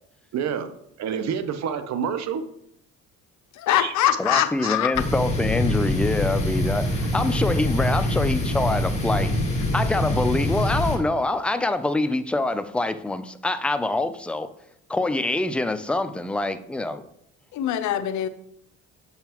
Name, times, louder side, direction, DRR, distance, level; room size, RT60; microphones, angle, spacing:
voice 1, 0.3-0.7 1.0-2.4 3.8-3.9 4.3-4.4, right 7 dB, 60° right, 10 dB, 0.8 m, -28 dB
voice 2, 3.5-4.9 17.5-18.3, left 12 dB, 65° left, 11 dB, 0.6 m, -23 dB
voice 3, 4.2-9.3 9.7-14.5 14.9-17.0, left 2 dB, 5° left, 10 dB, 0.4 m, -25 dB
sound 1, 4.9-11.0, left 1 dB, 20° left, 1.8 m, -24 dB
6.8 x 5.6 x 2.9 m, 0.73 s
cardioid pair, 90°, 31 cm